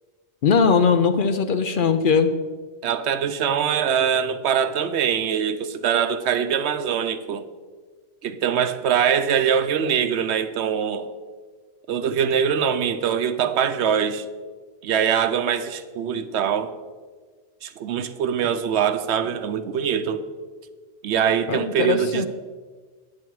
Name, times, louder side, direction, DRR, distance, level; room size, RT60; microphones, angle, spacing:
voice 1, 0.4-2.4 21.5-22.3, left 5 dB, 55° left, 0.7 m, -20 dB
voice 2, 2.8-7.4 8.2-11.1 11.9-14.3 14.8-16.7 17.6-20.3 21.0-22.3, right 8 dB, 75° right, 0.9 m, -23 dB
8.7 x 8.5 x 4.6 m
omnidirectional pair, 1.2 m